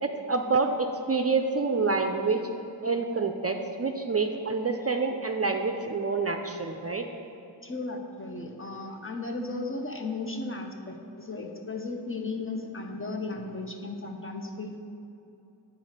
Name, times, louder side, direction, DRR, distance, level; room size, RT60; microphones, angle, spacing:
voice 1, 0.0-2.5 2.8-7.1, right 4 dB, 35° right, 5 dB, 0.5 m, -27 dB
voice 2, 7.6-14.8, left 3 dB, 30° left, 3 dB, 0.7 m, -35 dB
8.8 x 4.1 x 6.5 m, 2.9 s
wide cardioid pair, 70°, 44 cm